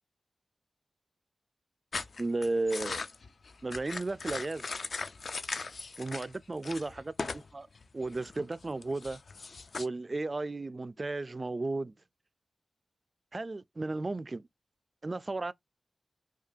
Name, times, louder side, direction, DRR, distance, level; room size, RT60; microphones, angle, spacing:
sound 1, 1.9-6.3 6.6-7.5 7.7-9.9, left 4 dB, 60° left, 0.4 m, -39 dB
voice 1, 2.2-3.0 3.6-4.7 6.0-7.7 7.9-9.2 9.8-11.9 13.3-14.4 15.0-15.5, right 2 dB, 35° right, 0.3 m, -34 dB
5.0 x 2.3 x 2.6 m
wide cardioid pair, 115°, 0 cm